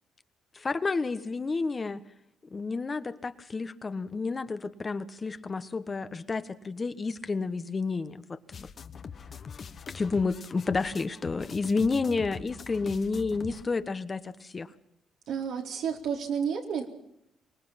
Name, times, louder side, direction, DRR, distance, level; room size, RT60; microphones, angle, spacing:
voice 1, 0.5-2.0 2.5-8.7 9.9-14.7, left 4 dB, 30° left, 11 dB, 1.2 m, -30 dB
sound 1, 8.5-13.6, left 6 dB, 50° left, 1.3 m, -43 dB
voice 2, 15.3-16.9, right 7 dB, 80° right, 1 dB, 4.1 m, -31 dB
24.5 x 20.0 x 5.9 m, 0.79 s
cardioid pair, 90°, 0 cm